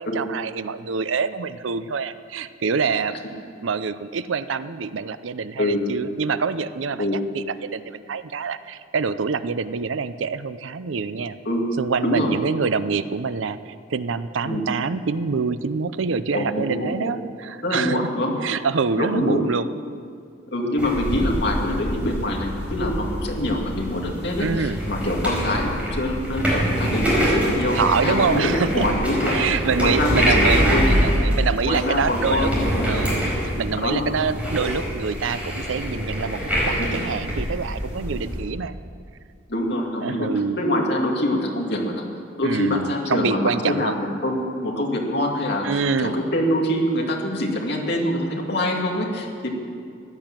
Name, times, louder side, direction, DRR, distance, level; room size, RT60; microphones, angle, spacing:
voice 1, 0.0-11.4 11.8-18.0 18.4-19.7 24.4-24.8 27.7-28.9 29.3-32.5 32.9-38.7 40.0-40.6 42.4-44.0 45.6-46.2, right 5 dB, 80° right, 14 dB, 0.6 m, -26 dB
voice 2, 16.3-17.1 17.6-18.3 19.0-19.4 20.5-29.4 29.8-30.8 31.6-32.8 33.8-34.0 36.8-36.9 39.5-40.3 40.6-42.0 42.4-49.5, left 1 dB, 55° left, -1 dB, 2.3 m, -24 dB
sound 1, 20.8-38.4, equal, 5° right, 4.6 m, -25 dB
15.5 x 11.0 x 7.4 m, 2.3 s
head